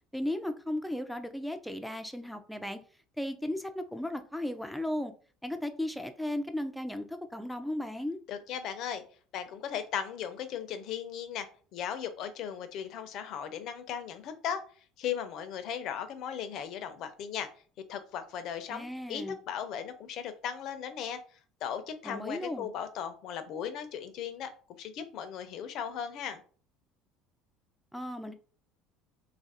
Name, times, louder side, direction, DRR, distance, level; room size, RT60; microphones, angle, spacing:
voice 1, 0.1-2.8 3.2-5.1 5.4-8.2 18.7-19.4 22.0-22.7 27.9-28.3, left 1 dB, ahead, 7 dB, 0.4 m, -35 dB
voice 2, 8.3-9.0 9.3-14.6 15.0-17.5 17.9-21.2 21.6-24.5 24.8-26.4, left 8 dB, 50° left, 9 dB, 0.6 m, -37 dB
2.8 x 2.5 x 4.1 m, 0.41 s
cardioid pair, 140°, 0 cm